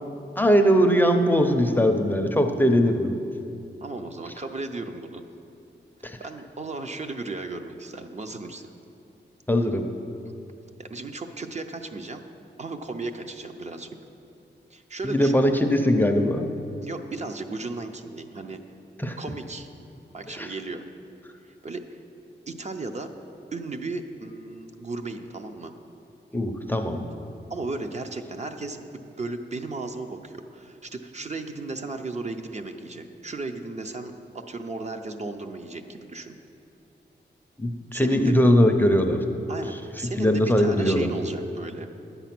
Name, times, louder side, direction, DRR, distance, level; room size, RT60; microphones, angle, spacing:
voice 1, 0.4-3.1 6.0-6.2 9.5-9.9 15.0-16.4 19.0-19.2 20.4-20.5 26.3-27.1 37.6-39.2 40.0-41.1, equal, 10° left, 4 dB, 0.5 m, -21 dB
voice 2, 3.8-5.2 6.2-8.6 10.8-12.2 12.6-14.0 14.7-15.4 16.8-18.6 19.2-19.7 20.1-20.8 21.4-21.9 22.5-23.1 23.5-25.7 27.5-36.3 37.9-38.3 39.5-41.9, right 3 dB, 35° right, 6 dB, 0.5 m, -35 dB
10.5 x 8.1 x 5.9 m, 2.7 s
wide cardioid pair, 170°, 19 cm